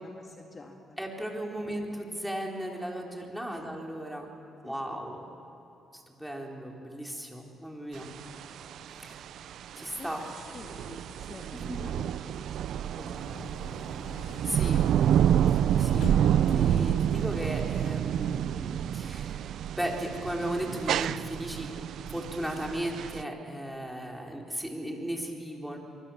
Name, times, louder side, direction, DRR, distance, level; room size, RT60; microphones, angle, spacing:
voice 1, 0.0-1.0 1.6-1.7 3.5-3.7 4.6-5.0 10.0-12.7 13.0-14.1, left 3 dB, 35° left, 2 dB, 2.0 m, -50 dB
voice 2, 1.0-4.3 4.6-5.2 5.9-8.1 8.8-9.2 9.8-10.2 11.5-11.9 14.3-14.8 15.5-16.1 16.5-19.5 19.8-21.7 22.1-25.8, right 1 dB, ahead, 0 dB, 4.4 m, -36 dB
sound 1, 8.0-16.3, right 4 dB, 55° right, 6.7 m, -57 dB
sound 2, 8.0-23.2, right 10 dB, 75° right, 0.5 m, -28 dB
Sliding door, 12.8-17.7, left 10 dB, 80° left, 0.7 m, -45 dB
27.0 x 24.0 x 7.4 m, 3.0 s
cardioid pair, 90°, 0 cm